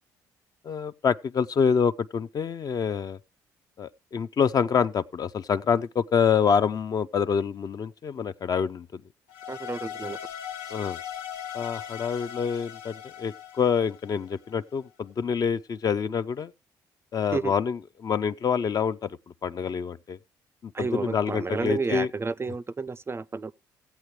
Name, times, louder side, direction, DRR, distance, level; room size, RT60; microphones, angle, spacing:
voice 1, 0.6-3.2 3.8-9.0 10.7-11.0 11.5-16.5 17.1-20.2 20.6-22.1, left 6 dB, 45° left, 0.5 m, -26 dB
sound 1, 9.3-14.5, left 9 dB, 85° left, 0.6 m, -39 dB
voice 2, 9.5-10.2 17.3-17.5 20.7-23.5, right 4 dB, 25° right, 0.4 m, -31 dB
15.5 x 8.1 x 3.1 m
hypercardioid pair, 55°, 9 cm